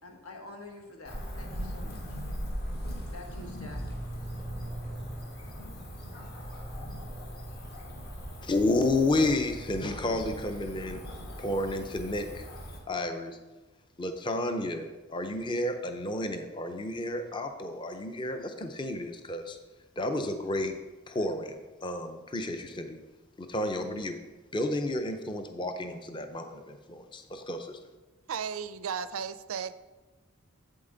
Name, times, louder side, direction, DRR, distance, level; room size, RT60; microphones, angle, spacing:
voice 1, 0.0-2.2 3.1-3.8, left 2 dB, 85° left, 1 dB, 1.5 m, -47 dB
Cricket / Motor vehicle (road), 1.1-12.8, equal, 50° left, 1.6 m, -39 dB
voice 2, 8.4-11.0 11.4-12.5 12.9-13.4 14.0-19.6 20.0-20.7 21.1-23.0 23.4-24.2 24.5-27.8, left 2 dB, 20° left, 7 dB, 0.5 m, -31 dB
voice 3, 28.3-29.7, right 7 dB, 70° right, 13 dB, 0.4 m, -34 dB
8.0 x 7.6 x 3.9 m, 1.2 s
head